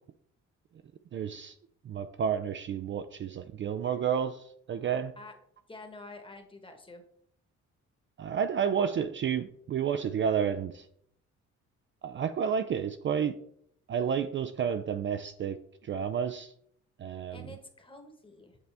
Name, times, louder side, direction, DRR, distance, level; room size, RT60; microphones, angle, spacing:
voice 1, 1.1-1.6 1.8-5.1 8.2-10.9 12.0-13.3 13.9-15.6 15.8-16.5 17.0-17.5, right 7 dB, 40° right, 9 dB, 0.4 m, -31 dB
voice 2, 5.7-7.0 17.3-18.6, left 2 dB, 15° left, 5 dB, 1.2 m, -48 dB
8.0 x 3.9 x 3.4 m, 0.68 s
cardioid pair, 90°, 30 cm